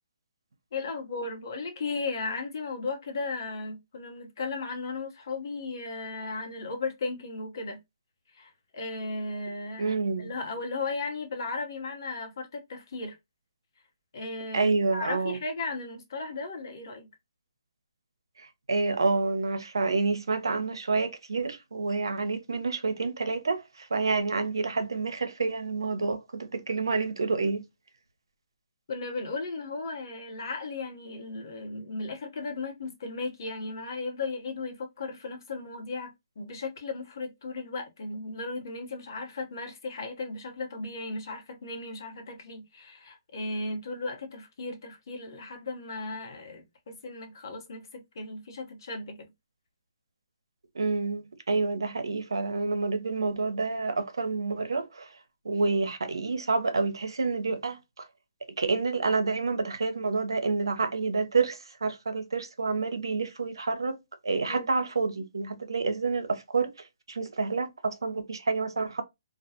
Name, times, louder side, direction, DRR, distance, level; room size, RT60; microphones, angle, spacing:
voice 1, 0.7-7.8 8.3-13.2 14.1-17.1 28.9-49.3 64.5-64.7, left 3 dB, 60° left, 0.9 m, -36 dB
voice 2, 9.8-10.4 14.5-15.4 18.4-27.6 50.7-55.2 55.4-58.1 58.6-64.0 64.2-69.0, right 4 dB, 85° right, 0.6 m, -28 dB
2.4 x 2.2 x 2.7 m
hypercardioid pair, 145°, 2 cm